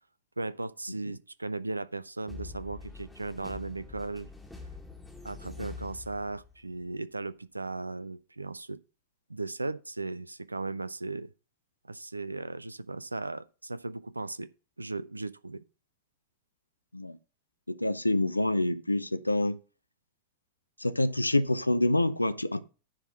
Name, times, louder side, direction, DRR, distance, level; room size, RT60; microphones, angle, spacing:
voice 1, 0.4-4.3 5.2-8.8 9.3-11.3 11.8-14.5 14.8-15.6, right 3 dB, 80° right, 0.4 m, -37 dB
sound 1, 2.3-6.7, left 4 dB, 5° left, 1.6 m, -45 dB
voice 2, 17.7-19.6 20.8-22.6, left 1 dB, 85° left, 0.5 m, -27 dB
9.9 x 3.7 x 5.7 m
figure-of-eight pair, 90°, 0 cm